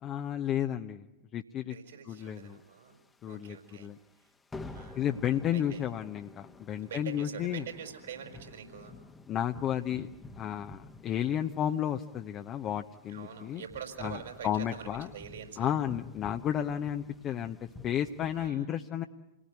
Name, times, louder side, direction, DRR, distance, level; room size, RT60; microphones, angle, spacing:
voice 1, 0.0-1.1 1.3-1.8 2.1-2.6 3.2-4.0 4.9-7.6 9.3-10.1 10.4-13.6 14.0-15.1 15.6-19.0, left 10 dB, 30° left, 6 dB, 0.9 m, -32 dB
voice 2, 1.7-3.0 3.2-3.9 4.2-4.3 4.6-5.1 5.5-5.9 6.8-9.0 13.1-15.8 18.3-18.7, right 8 dB, 65° right, 4 dB, 5.3 m, -45 dB
sound 1, 2.3-3.3 3.6-3.8 4.1-4.3 4.5-18.5, left 3 dB, 15° left, 1.3 m, -50 dB
28.0 x 19.0 x 9.5 m, 1.0 s
figure-of-eight pair, 90°, 0 cm